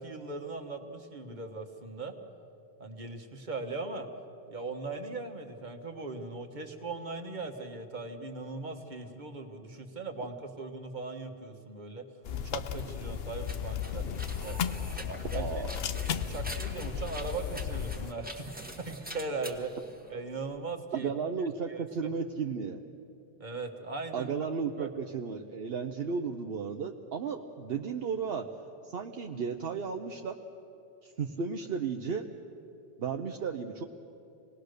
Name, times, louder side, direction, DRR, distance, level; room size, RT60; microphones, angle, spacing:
voice 1, 0.0-2.1 2.8-4.1 4.5-12.1 12.3-14.0 14.4-15.6 16.1-19.7 20.1-21.1 21.7-22.1 23.4-24.3 24.8-24.9, right 3 dB, 45° right, 4 dB, 1.6 m, -39 dB
sound 1, 12.2-18.1, left 8 dB, 70° left, 0.9 m, -35 dB
sound 2, 12.7-20.6, right 1 dB, 10° right, 1.6 m, -45 dB
voice 2, 15.3-15.7 20.9-22.8 24.1-28.4 28.9-30.3 31.2-32.2 33.0-33.8, right 6 dB, 70° right, 3 dB, 1.1 m, -34 dB
26.5 x 19.0 x 6.6 m, 2.7 s
omnidirectional pair, 1.0 m